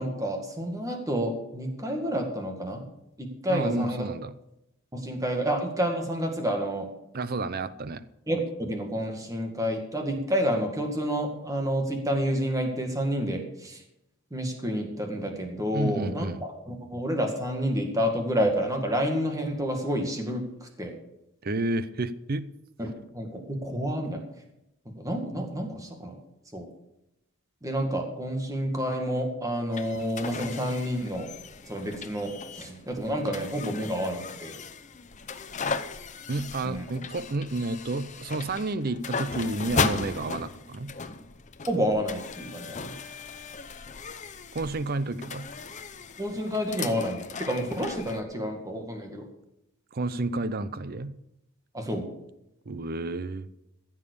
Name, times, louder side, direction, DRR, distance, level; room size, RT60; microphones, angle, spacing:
voice 1, 0.0-2.8 3.2-4.1 4.9-6.9 8.3-13.8 14.3-20.9 22.8-24.2 25.0-26.1 26.5-26.7 27.6-31.3 31.7-34.5 36.6-36.9 41.6-42.9 46.2-49.3 51.7-52.1, equal, 15° right, 3 dB, 2.0 m, -29 dB
voice 2, 3.5-4.3 7.1-8.0 15.7-16.4 21.4-22.5 36.3-40.9 44.5-45.5 49.9-51.1 52.7-53.5, right 2 dB, 45° right, 15 dB, 0.6 m, -30 dB
sound 1, 29.7-48.2, left 5 dB, 35° left, 0.7 m, -36 dB
15.0 x 7.4 x 6.9 m, 0.86 s
head